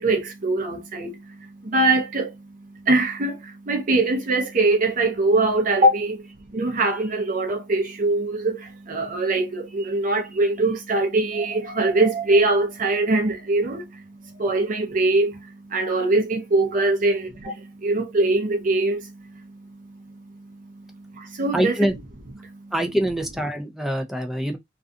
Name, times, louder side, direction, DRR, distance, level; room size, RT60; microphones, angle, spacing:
voice 1, 0.0-2.4 2.8-19.1 21.1-21.7, right 2 dB, 45° right, 0.6 m, -22 dB
voice 2, 21.5-22.0 22.7-24.6, equal, ahead, 0.5 m, -24 dB
2.4 x 2.3 x 2.5 m
head